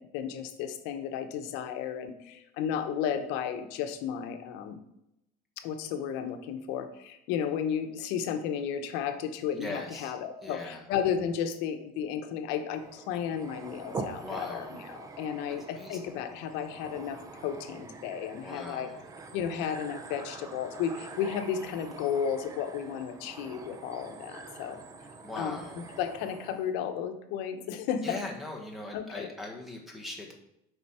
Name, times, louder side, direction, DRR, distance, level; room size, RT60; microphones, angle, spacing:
voice 1, 0.0-4.8 5.6-18.9 19.3-24.8 25.4-28.2 28.9-29.3, left 8 dB, 70° left, 7 dB, 1.0 m, -33 dB
voice 2, 9.5-10.1 10.4-10.8 14.2-14.7 15.7-16.0 18.4-19.0 25.2-25.8 28.0-30.3, left 2 dB, ahead, 0 dB, 1.3 m, -40 dB
sound 1, 12.7-26.7, right 3 dB, 15° right, 0.6 m, -45 dB
8.1 x 5.2 x 4.3 m, 0.83 s
cardioid pair, 165°, 19 cm